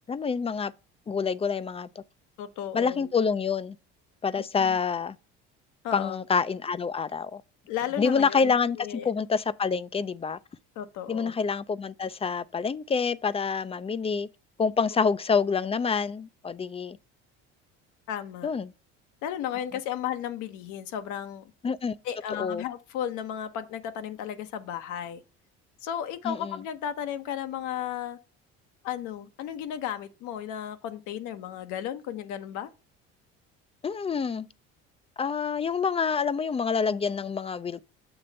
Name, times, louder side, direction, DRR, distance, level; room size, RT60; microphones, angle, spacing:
voice 1, 0.1-0.7 1.1-1.9 2.7-3.8 4.2-5.2 5.9-7.4 8.0-10.4 11.1-14.3 14.6-17.0 18.4-18.7 21.6-21.9 22.4-22.6 26.2-26.6 33.8-34.5 35.2-37.8, left 5 dB, 20° left, 0.4 m, -27 dB
voice 2, 2.4-3.1 4.6-4.8 5.8-6.2 7.7-9.1 10.8-11.3 18.1-18.5 19.2-21.4 22.0-25.2 25.8-28.2 28.8-32.7, left 10 dB, 75° left, 0.9 m, -34 dB
7.0 x 3.2 x 5.2 m
supercardioid pair, 90°, 30 cm